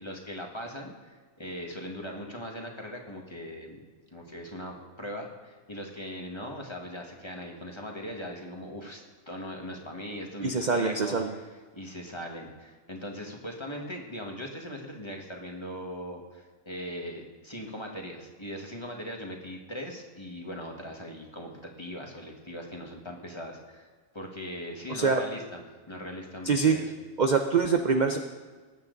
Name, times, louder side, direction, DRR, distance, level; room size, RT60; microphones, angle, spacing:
voice 1, 0.0-3.8 4.1-11.2 11.7-26.9, equal, 20° left, 1 dB, 1.6 m, -40 dB
voice 2, 10.4-11.3 24.9-25.2 26.4-26.8 27.2-28.2, right 5 dB, 45° right, 5 dB, 0.6 m, -24 dB
19.5 x 8.7 x 4.0 m, 1.4 s
omnidirectional pair, 1.6 m